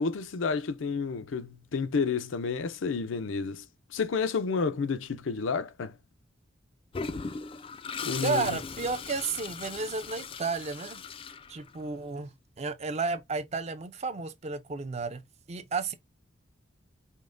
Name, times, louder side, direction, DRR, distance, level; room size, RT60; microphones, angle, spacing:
voice 1, 0.0-3.7 3.9-5.9 8.0-8.6, left 5 dB, 80° left, 0.5 m, -30 dB
Toilet flush, 6.9-12.0, left 5 dB, 30° left, 0.3 m, -38 dB
voice 2, 8.2-11.0 11.5-15.2 15.5-15.9, right 4 dB, 35° right, 0.4 m, -32 dB
5.2 x 2.1 x 2.5 m
head